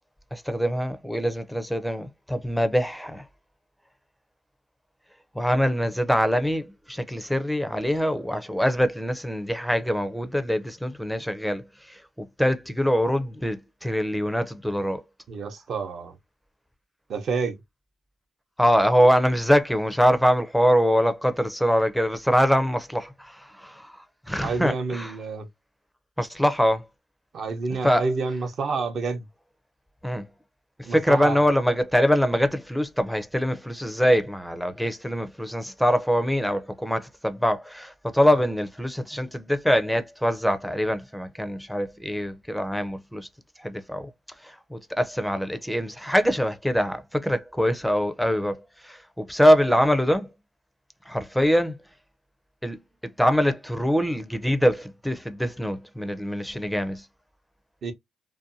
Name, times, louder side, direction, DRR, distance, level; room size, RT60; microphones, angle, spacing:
voice 1, 0.3-3.2 5.4-15.0 18.6-25.1 26.2-26.8 27.7-28.1 30.0-30.3 30.8-43.3 43.6-44.1 44.4-50.3 51.1-51.8 52.6-52.8 53.2-57.0, equal, ahead, 0.4 m, -24 dB
voice 2, 15.3-16.1 17.1-17.6 24.4-25.5 27.3-29.2 30.8-31.5 38.3-38.4 57.8-57.9, right 4 dB, 55° right, 0.7 m, -29 dB
2.6 x 2.1 x 2.6 m
cardioid pair, 90°, 0 cm